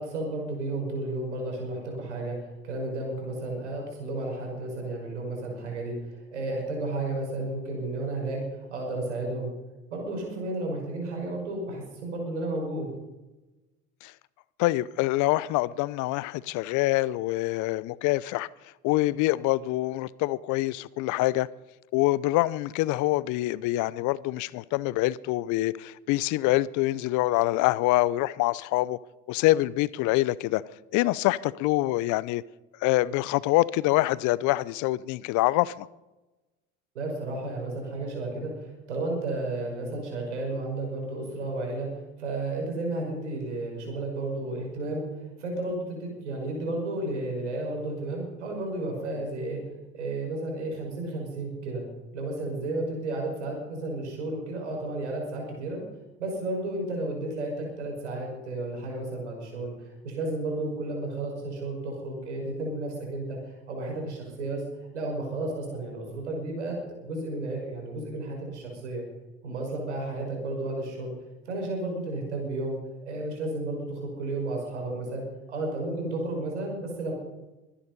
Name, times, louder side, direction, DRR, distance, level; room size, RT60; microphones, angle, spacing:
voice 1, 0.0-2.4 2.6-9.5 9.9-12.9 36.9-49.6 49.9-51.8 52.1-55.8 56.2-64.6 64.9-69.0 69.4-71.1 71.5-77.1, right 2 dB, 90° right, 5.7 m, -32 dB
voice 2, 14.6-18.5 18.8-21.5 21.9-29.0 29.3-30.6 30.9-32.4 32.8-35.9, left 18 dB, 60° left, 0.7 m, -25 dB
23.5 x 10.0 x 5.4 m
hypercardioid pair, 70°, 34 cm